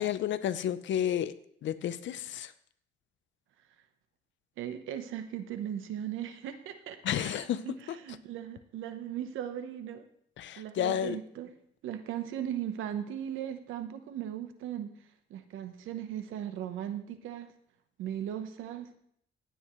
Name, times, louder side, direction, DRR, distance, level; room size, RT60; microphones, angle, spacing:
voice 1, 0.0-1.3 1.6-2.5 7.0-8.0 10.4-11.2, left 10 dB, 70° left, 13 dB, 0.8 m, -31 dB
voice 2, 4.6-7.7 8.0-10.0 10.6-11.5 11.8-14.9 15.3-17.5 18.0-18.9, right 10 dB, 90° right, 9 dB, 1.1 m, -38 dB
16.0 x 9.1 x 3.2 m, 0.68 s
cardioid pair, 90°, 20 cm